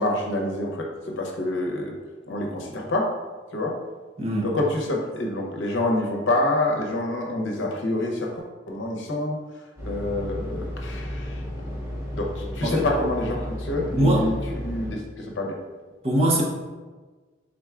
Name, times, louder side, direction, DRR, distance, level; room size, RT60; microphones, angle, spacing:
voice 1, 0.0-1.9 2.3-3.1 3.5-3.8 4.4-11.4 12.1-15.6, left 1 dB, 70° left, 0 dB, 0.7 m, -27 dB
voice 2, 4.2-4.5 12.6-12.9 13.9-14.2 16.0-16.4, right 1 dB, 30° right, -2 dB, 0.7 m, -21 dB
sound 1, 9.8-14.9, equal, 15° right, 1.4 m, -33 dB
4.6 x 3.8 x 2.3 m, 1.3 s
head